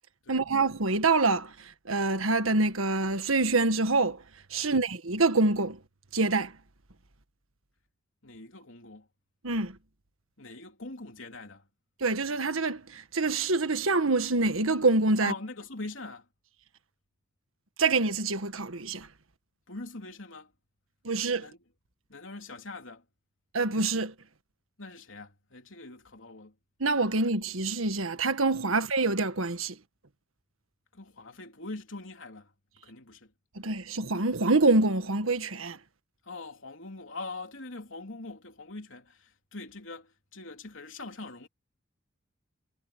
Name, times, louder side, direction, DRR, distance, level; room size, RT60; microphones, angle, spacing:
voice 1, 0.3-4.2 4.5-5.8 6.1-6.5 9.4-9.8 12.0-15.3 17.8-19.1 21.0-21.5 23.5-24.1 26.8-29.8 33.5-35.8, right 3 dB, 85° right, 1.6 m, -26 dB
voice 2, 8.2-9.1 10.4-11.7 15.2-16.3 19.7-20.5 21.4-21.6 22.1-23.0 24.8-26.6 30.9-32.5 32.8-33.3 36.2-41.5, left 3 dB, 70° left, 3.4 m, -42 dB
head